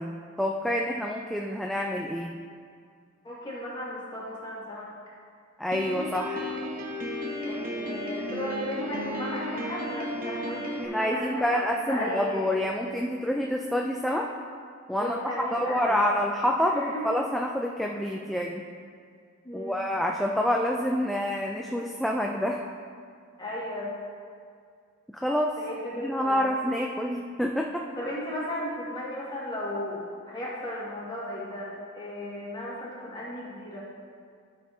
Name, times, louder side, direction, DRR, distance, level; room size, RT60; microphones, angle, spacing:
voice 1, 0.0-2.4 5.6-6.5 10.8-14.3 14.9-18.6 19.5-22.6 25.1-25.5 26.0-27.8, equal, ahead, 0 dB, 0.3 m, -27 dB
voice 2, 3.2-5.1 7.4-12.5 15.0-16.1 16.7-17.2 19.4-19.8 23.4-24.0 25.6-26.4 28.0-33.9, left 1 dB, 20° left, -6 dB, 1.9 m, -35 dB
Piano, 5.7-10.9, equal, 45° right, 1.0 m, -34 dB
12.5 x 6.8 x 2.8 m, 2.1 s
head